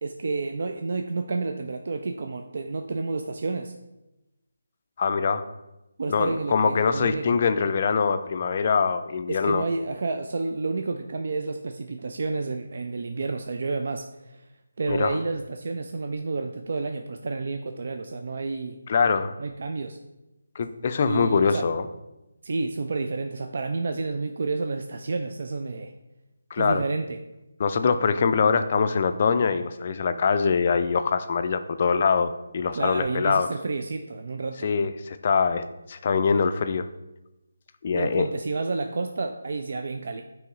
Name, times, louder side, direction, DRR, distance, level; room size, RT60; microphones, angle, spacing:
voice 1, 0.0-3.7 6.0-7.3 9.3-14.5 14.8-18.8 19.4-20.0 21.0-21.7 22.4-25.9 26.6-27.2 32.7-34.7 37.9-40.2, right 3 dB, 55° right, 5 dB, 0.4 m, -30 dB
voice 2, 5.0-5.5 6.1-9.6 14.9-15.2 18.9-19.3 20.6-21.9 26.5-26.8 27.6-33.5 34.6-36.9 37.8-38.3, left 5 dB, 40° left, 10 dB, 0.3 m, -23 dB
9.3 x 3.1 x 3.5 m, 0.97 s
figure-of-eight pair, 155°, 0 cm